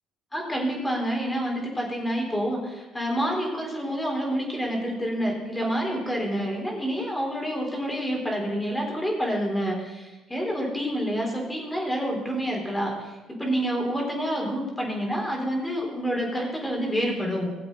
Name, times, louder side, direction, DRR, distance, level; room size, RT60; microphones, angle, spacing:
voice 1, 0.3-17.5, equal, 10° left, -1 dB, 3.9 m, -28 dB
17.5 x 7.8 x 4.0 m, 1.1 s
supercardioid pair, 85°, 0 cm